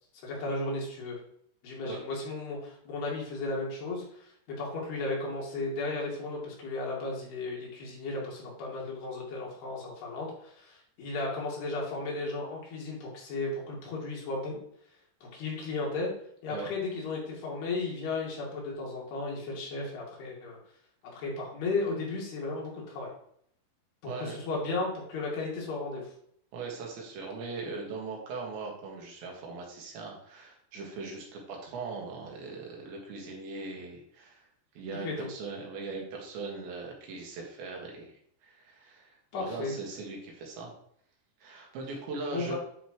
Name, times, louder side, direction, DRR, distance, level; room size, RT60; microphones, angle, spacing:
voice 1, 0.2-1.2 1.6-14.6 15.2-16.1 16.4-20.6 21.0-23.1 24.0-26.1 34.9-35.3 39.3-39.8 42.3-42.6, left 3 dB, 65° left, -3 dB, 3.8 m, -35 dB
voice 2, 24.1-24.4 26.5-34.5 34.8-40.7 41.4-42.6, right 3 dB, 70° right, 0 dB, 3.8 m, -40 dB
9.9 x 5.1 x 3.0 m, 0.67 s
omnidirectional pair, 5.4 m